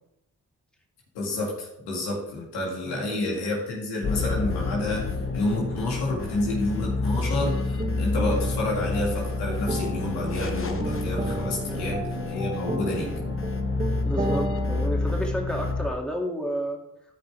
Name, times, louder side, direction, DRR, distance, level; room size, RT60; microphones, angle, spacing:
voice 1, 1.1-5.1 5.3-13.1, left 2 dB, 90° left, -2 dB, 2.2 m, -29 dB
sound 1, 4.0-15.9, left 3 dB, 35° left, 1.0 m, -29 dB
sound 2, 7.2-14.9, right 2 dB, 20° right, 1.9 m, -34 dB
voice 2, 11.6-12.0 13.0-13.2 14.0-16.8, equal, ahead, 0 dB, 2.3 m, -31 dB
12.5 x 5.2 x 3.4 m, 0.80 s
supercardioid pair, 40°, 39 cm